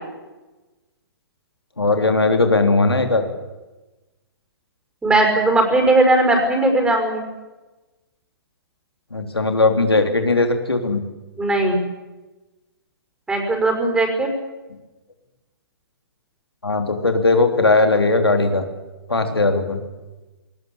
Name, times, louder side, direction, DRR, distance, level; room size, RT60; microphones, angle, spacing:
voice 1, 1.8-3.3 9.1-11.0 16.6-18.6 19.1-19.8, left 3 dB, 90° left, 6 dB, 3.5 m, -18 dB
voice 2, 5.0-7.2 11.4-11.8 13.3-14.3, right 2 dB, 5° right, 4 dB, 5.8 m, -18 dB
20.0 x 20.0 x 8.7 m, 1.1 s
figure-of-eight pair, 125°, 13 cm